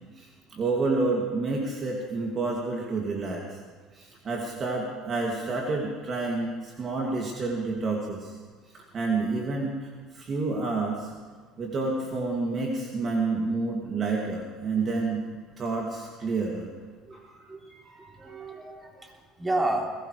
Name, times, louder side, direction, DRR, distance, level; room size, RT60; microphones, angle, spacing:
voice 1, 0.2-3.6 3.9-8.4 8.7-9.9 10.1-11.1 11.6-15.2 15.6-16.7 17.1-17.4 17.7-18.8, right 3 dB, 40° right, -1 dB, 2.4 m, -29 dB
voice 2, 18.1-20.1, right 2 dB, 20° right, 0 dB, 3.3 m, -31 dB
21.0 x 17.0 x 3.3 m, 1.5 s
hypercardioid pair, 65°, 0 cm